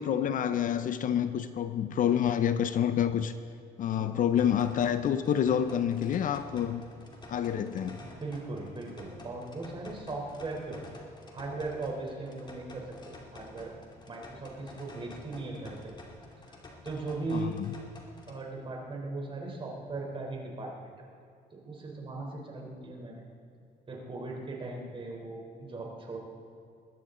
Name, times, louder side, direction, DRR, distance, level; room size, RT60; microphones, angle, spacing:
voice 1, 0.0-3.3 3.8-6.8 7.3-8.0 17.3-17.7, left 9 dB, 50° left, 11 dB, 0.7 m, -28 dB
sound 1, 4.4-18.4, left 2 dB, 25° left, 2.6 m, -50 dB
voice 2, 8.0-10.8 11.3-13.7 14.1-15.9 16.5-16.6 16.8-17.6 18.3-20.7 21.6-23.2 23.9-26.2, right 3 dB, 30° right, 0 dB, 3.7 m, -38 dB
21.0 x 13.5 x 3.9 m, 2.5 s
cardioid pair, 110°, 17 cm